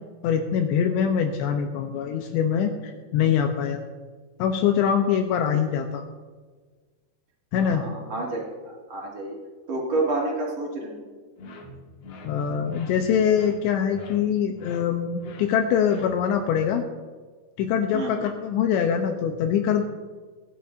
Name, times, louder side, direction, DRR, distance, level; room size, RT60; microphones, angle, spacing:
voice 1, 0.2-3.8 4.4-6.0 7.5-7.9 12.2-16.9 17.6-19.8, left 8 dB, 85° left, 5 dB, 2.5 m, -23 dB
voice 2, 7.6-9.4 9.7-11.0 17.9-18.3, right 2 dB, 45° right, -3 dB, 2.2 m, -29 dB
sound 1, 11.4-16.5, left 2 dB, 65° left, 3.3 m, -45 dB
21.5 x 10.0 x 2.6 m, 1.5 s
omnidirectional pair, 5.8 m